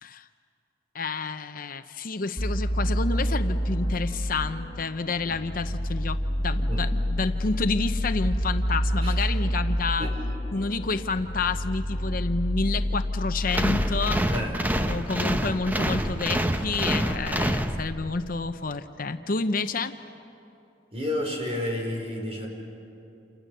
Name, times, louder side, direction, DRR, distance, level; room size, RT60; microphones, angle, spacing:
voice 1, 0.9-10.1 10.5-14.2 14.9-19.9, left 3 dB, 50° left, 9 dB, 0.8 m, -29 dB
sound 1, 2.4-14.1, equal, 25° left, 5.3 m, -28 dB
sound 2, 13.5-18.2, right 1 dB, 10° right, 0.9 m, -27 dB
voice 2, 14.3-14.6 20.9-22.5, left 1 dB, 35° right, 1 dB, 5.2 m, -31 dB
29.0 x 28.5 x 6.7 m, 2.8 s
head